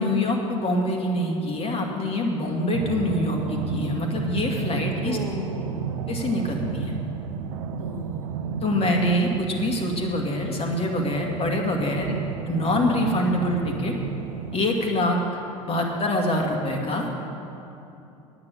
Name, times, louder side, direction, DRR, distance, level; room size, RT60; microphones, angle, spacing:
voice 1, 0.0-5.2 6.1-6.9 8.6-12.1 12.5-13.9 14.5-15.2 15.7-17.1, left 1 dB, 35° left, 1 dB, 2.2 m, -25 dB
sound 1, 2.7-14.6, right 6 dB, 70° right, 0.7 m, -32 dB
voice 2, 5.0-6.0 7.8-8.4 12.0-12.3, right 1 dB, 90° right, 4 dB, 1.1 m, -35 dB
9.7 x 9.0 x 8.5 m, 2.8 s
figure-of-eight pair, 70°, 18 cm